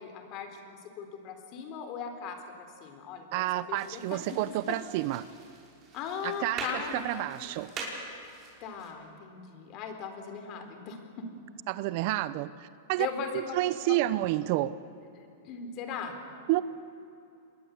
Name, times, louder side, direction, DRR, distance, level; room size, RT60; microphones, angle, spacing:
voice 1, 0.0-4.4 4.7-4.8 5.9-7.5 8.6-11.0 13.0-13.6 13.9-14.2 15.2-16.2, left 6 dB, 40° left, 6 dB, 3.9 m, -39 dB
voice 2, 3.3-5.3 6.2-7.7 11.7-13.1 13.3-14.7 16.5-16.6, right 16 dB, 50° right, 16 dB, 0.7 m, -30 dB
sound 1, 3.7-8.9, right 3 dB, 30° right, 5.7 m, -43 dB
26.5 x 21.0 x 8.3 m, 2.7 s
supercardioid pair, 140°, 0 cm